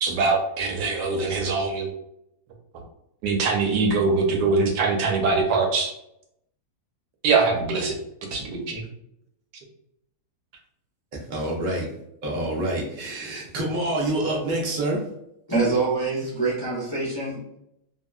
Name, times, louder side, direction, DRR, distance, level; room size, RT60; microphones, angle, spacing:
voice 1, 0.0-1.9 3.2-5.9 7.2-7.9 8.3-8.8, right 4 dB, 80° right, 2 dB, 1.3 m, -23 dB
voice 2, 11.1-11.9 12.2-15.0, right 1 dB, 45° right, -2 dB, 0.6 m, -27 dB
voice 3, 15.5-17.6, right 3 dB, 40° left, -8 dB, 0.3 m, -25 dB
2.8 x 2.7 x 2.3 m, 0.78 s
omnidirectional pair, 1.8 m